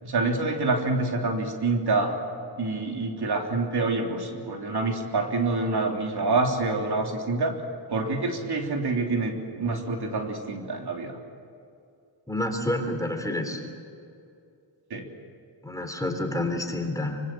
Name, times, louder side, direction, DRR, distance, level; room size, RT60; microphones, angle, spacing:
voice 1, 0.0-2.1 2.5-7.5 7.9-11.2 14.9-15.0, right 3 dB, 60° right, 2 dB, 3.4 m, -27 dB
voice 2, 12.3-13.6 15.6-17.2, left 1 dB, 10° left, 4 dB, 3.5 m, -29 dB
25.5 x 25.0 x 7.8 m, 2.5 s
wide cardioid pair, 120°, 43 cm